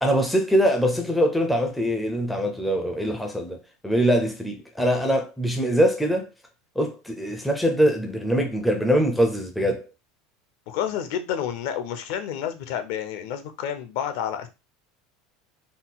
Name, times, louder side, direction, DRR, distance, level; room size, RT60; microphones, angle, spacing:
voice 1, 0.0-3.6 3.8-6.3 6.8-9.9, equal, ahead, 0.4 m, -23 dB
voice 2, 10.7-14.5, left 9 dB, 55° left, 0.6 m, -29 dB
3.9 x 2.2 x 4.0 m
supercardioid pair, 180°, 0 cm